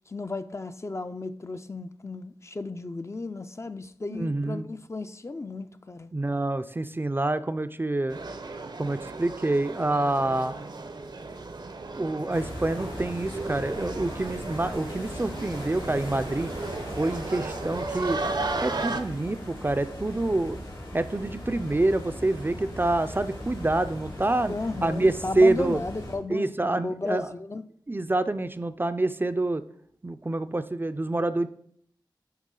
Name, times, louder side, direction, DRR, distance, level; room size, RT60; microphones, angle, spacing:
voice 1, 0.1-6.1 24.5-27.6, left 3 dB, 35° left, 0.4 m, -34 dB
voice 2, 4.1-4.7 6.1-8.2 8.8-10.6 12.0-16.5 17.0-18.2 18.6-20.6 20.9-24.5 24.8-25.8 26.3-27.3 27.9-29.6 30.0-31.5, right 2 dB, 25° right, 0.4 m, -27 dB
sound 1, 8.1-19.0, right 3 dB, 60° right, 0.6 m, -35 dB
sound 2, 12.3-26.1, left 1 dB, 75° left, 2.5 m, -39 dB
10.5 x 3.5 x 3.8 m
wide cardioid pair, 65°, 8 cm